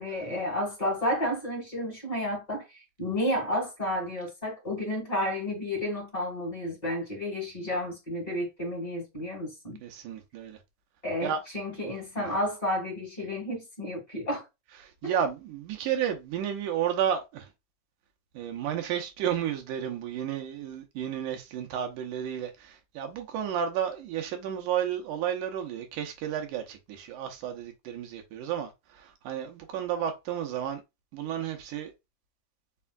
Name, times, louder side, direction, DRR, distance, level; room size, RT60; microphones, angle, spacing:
voice 1, 0.0-9.8 11.0-14.5 15.0-15.2, left 1 dB, 15° left, 1.8 m, -31 dB
voice 2, 9.8-10.6 11.2-11.4 12.2-12.3 14.8-17.5 18.3-30.8 31.1-31.9, right 9 dB, 80° right, 2.4 m, -32 dB
5.5 x 3.4 x 2.4 m
omnidirectional pair, 3.6 m